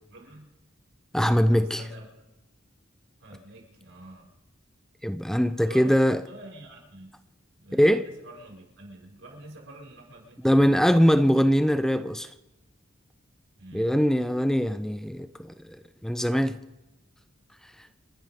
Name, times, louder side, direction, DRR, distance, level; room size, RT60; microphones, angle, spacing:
voice 1, 0.1-0.5 1.2-2.1 3.2-4.3 5.5-7.1 7.6-11.3 13.6-13.9, right 1 dB, 85° right, 5.7 m, -47 dB
voice 2, 1.1-1.8 5.0-6.2 7.7-8.0 10.4-12.3 13.7-15.5 16.0-16.6, equal, ahead, 0.5 m, -22 dB
28.5 x 11.5 x 3.8 m
head